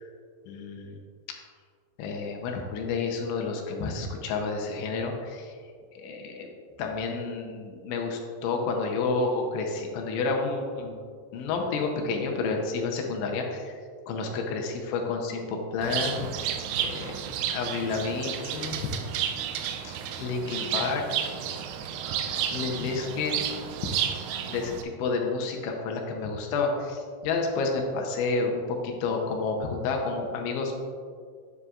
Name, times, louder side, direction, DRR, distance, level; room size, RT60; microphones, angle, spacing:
voice 1, 0.5-1.0 2.0-5.5 6.0-6.5 6.8-11.0 11.3-13.7 14.1-17.2 17.5-18.8 19.8-21.0 22.0-23.4 23.8-23.9 24.4-30.8, left 4 dB, 80° left, 1 dB, 3.1 m, -30 dB
Bird, 15.8-24.8, right 9 dB, 85° right, 3.0 m, -32 dB
9.7 x 9.0 x 2.4 m, 2.1 s
omnidirectional pair, 5.5 m